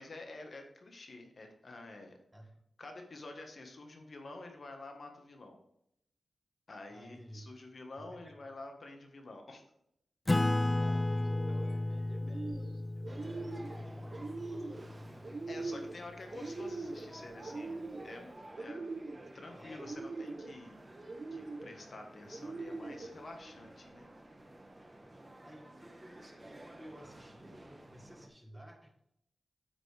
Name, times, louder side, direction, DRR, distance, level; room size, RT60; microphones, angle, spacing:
voice 1, 0.0-2.2 2.8-5.6 6.7-9.6 10.6-10.7 15.5-17.8 18.0-18.8 19.3-20.8 21.3-24.1, left 2 dB, 60° left, 4 dB, 1.4 m, -49 dB
voice 2, 2.3-2.6 6.9-7.5 8.0-8.5 10.6-15.4 19.4-20.0 25.4-28.9, equal, 10° right, 3 dB, 1.4 m, -55 dB
Acoustic guitar / Strum, 10.3-15.3, left 2 dB, 25° left, 0.3 m, -33 dB
sound 1, 11.2-11.7 12.1-12.7 13.0-13.8 14.1-14.8 15.2-16.0 16.3-17.1 17.4-18.2 18.5-19.3 19.8-20.5 21.1-21.7 22.3-23.1, right 3 dB, 50° right, 0.8 m, -42 dB
sound 2, 13.1-28.3, right 1 dB, 25° right, 1.1 m, -53 dB
9.1 x 6.1 x 3.4 m, 0.75 s
wide cardioid pair, 80°, 0 cm